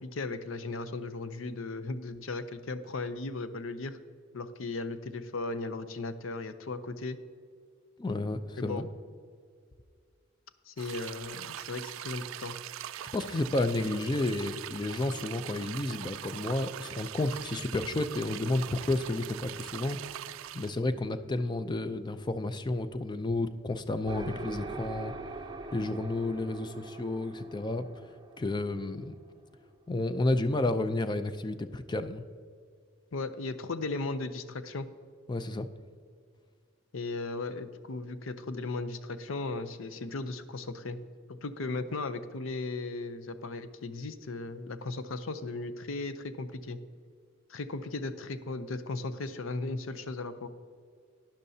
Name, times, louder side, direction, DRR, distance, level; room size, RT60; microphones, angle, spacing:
voice 1, 0.0-4.0 4.3-7.2 8.6-8.9 10.7-12.6 33.1-34.9 36.9-41.0 41.3-46.8 47.5-50.5, left 3 dB, 75° left, 12 dB, 0.6 m, -36 dB
voice 2, 8.0-8.9 13.1-20.0 20.5-25.1 25.7-27.9 28.4-29.1 29.9-32.2 35.3-35.7, left 2 dB, 20° left, 11 dB, 0.4 m, -31 dB
sound 1, 10.8-20.8, right 12 dB, 70° right, 0.3 m, -42 dB
sound 2, 24.1-29.7, right 2 dB, 20° right, 0.6 m, -43 dB
12.0 x 10.0 x 2.7 m, 2.1 s
head